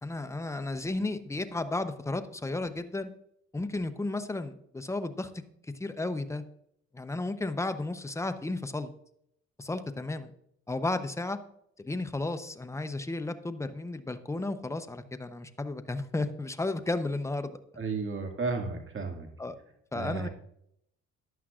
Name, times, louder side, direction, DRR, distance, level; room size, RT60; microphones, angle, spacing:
voice 1, 0.0-3.1 3.5-5.3 5.8-6.4 6.9-8.9 9.6-10.3 10.7-11.4 11.8-17.6 19.4-19.5 19.9-20.3, left 2 dB, 10° left, 9 dB, 0.8 m, -33 dB
voice 2, 17.8-19.3 19.9-20.3, right 4 dB, 40° right, 3 dB, 2.2 m, -33 dB
15.0 x 11.0 x 2.5 m, 0.73 s
cardioid pair, 90°, 30 cm